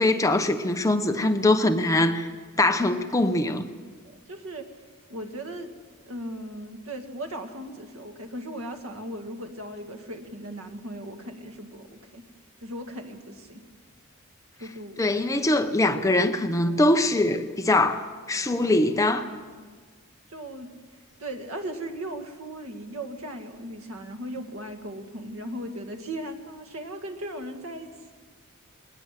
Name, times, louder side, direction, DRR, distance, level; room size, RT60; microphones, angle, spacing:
voice 1, 0.0-2.3 2.6-3.7 15.0-19.3, left 2 dB, 15° left, 0.9 m, -22 dB
voice 2, 4.3-4.7 5.1-5.7 6.0-12.2 12.6-13.6 14.6-15.0 18.6-18.7 20.3-20.7 21.2-28.1, right 1 dB, 85° right, 2.1 m, -37 dB
20.0 x 19.5 x 7.6 m
head